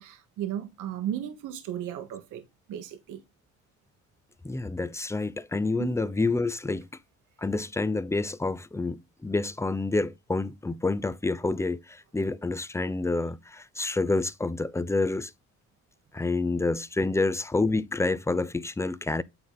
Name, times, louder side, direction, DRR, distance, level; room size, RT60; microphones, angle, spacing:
voice 1, 0.0-2.4 2.7-3.2 5.8-6.0, right 10 dB, 90° right, 1.2 m, -35 dB
voice 2, 4.4-6.9 7.4-15.3 16.1-19.2, left 3 dB, 10° left, 0.5 m, -28 dB
8.9 x 3.9 x 3.9 m
cardioid pair, 90°, 30 cm